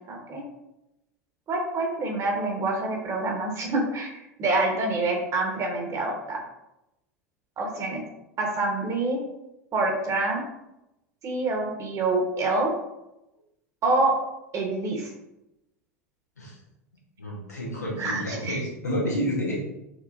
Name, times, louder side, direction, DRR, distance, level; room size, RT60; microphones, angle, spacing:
voice 1, 0.1-0.4 1.5-6.4 7.6-8.0 8.4-9.2 9.7-10.4 11.2-12.7 13.8-14.2 14.5-15.1 18.0-18.6 18.9-19.0, right 2 dB, 40° right, 1 dB, 1.3 m, -26 dB
voice 2, 17.2-19.6, equal, 90° left, -5 dB, 1.4 m, -30 dB
6.4 x 3.0 x 2.7 m, 0.90 s
figure-of-eight pair, 80°, 9 cm